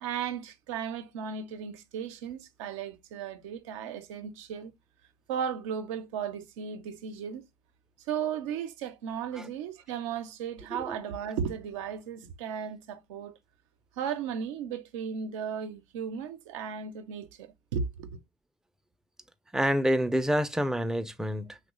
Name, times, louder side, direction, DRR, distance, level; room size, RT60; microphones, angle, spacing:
voice 1, 0.0-4.7 5.3-7.4 8.1-13.3 14.0-18.2, right 7 dB, 80° right, 0.5 m, -35 dB
voice 2, 19.5-21.6, equal, 5° right, 0.4 m, -28 dB
2.9 x 2.2 x 3.6 m
hypercardioid pair, 75°, 16 cm